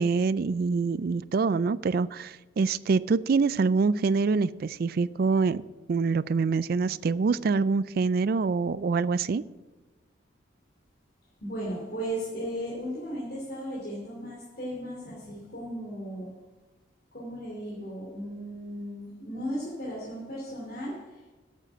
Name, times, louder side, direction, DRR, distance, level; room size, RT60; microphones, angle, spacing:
voice 1, 0.0-5.6 5.9-9.4, right 4 dB, 45° right, 18 dB, 0.3 m, -25 dB
voice 2, 11.4-16.3 17.1-21.3, equal, 45° left, -5 dB, 2.7 m, -36 dB
9.0 x 7.5 x 8.9 m, 1.2 s
head